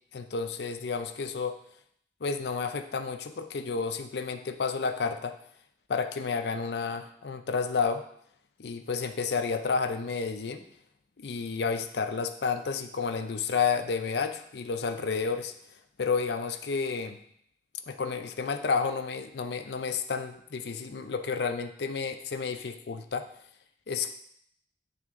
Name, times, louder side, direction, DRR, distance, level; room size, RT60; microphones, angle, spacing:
voice 1, 0.1-1.6 2.2-5.4 5.9-8.0 8.6-10.6 11.2-15.5 16.0-17.2 17.9-23.3 23.9-24.1, left 5 dB, 75° left, 7 dB, 0.5 m, -31 dB
9.1 x 3.5 x 3.6 m, 0.68 s
head